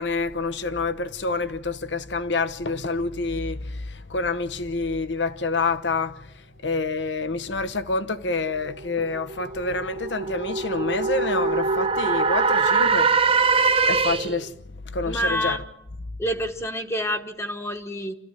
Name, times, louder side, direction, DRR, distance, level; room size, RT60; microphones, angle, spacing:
voice 1, 0.0-6.3 6.6-13.5 13.9-14.6 14.9-15.6, left 3 dB, 70° left, 1.0 m, -27 dB
sound 1, 8.5-14.5, right 4 dB, 30° right, 0.8 m, -23 dB
voice 2, 15.0-15.6 16.2-18.2, equal, 15° left, 1.2 m, -27 dB
27.0 x 14.5 x 9.1 m
head